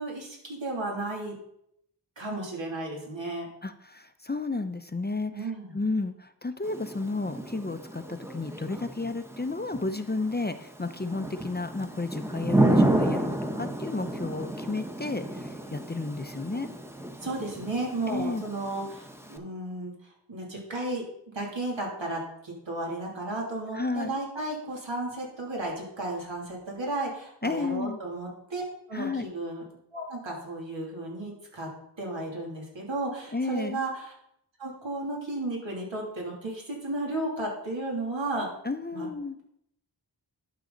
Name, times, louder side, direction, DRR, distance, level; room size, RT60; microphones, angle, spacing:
voice 1, 0.0-1.4 2.2-3.5 5.3-5.8 17.2-21.0 21.3-29.7 29.9-31.7 32.0-34.1 34.6-38.5 38.9-39.1, right 2 dB, 85° right, -2 dB, 2.9 m, -34 dB
voice 2, 3.6-5.5 5.7-16.7 18.1-18.4 23.7-24.2 27.4-28.0 28.9-29.3 33.3-33.8 38.6-39.4, left 3 dB, 25° left, 10 dB, 0.6 m, -32 dB
Thunder / Rain, 6.6-19.4, right 1 dB, 5° right, 1.0 m, -31 dB
11.5 x 6.2 x 4.0 m, 0.75 s
wide cardioid pair, 60°, 44 cm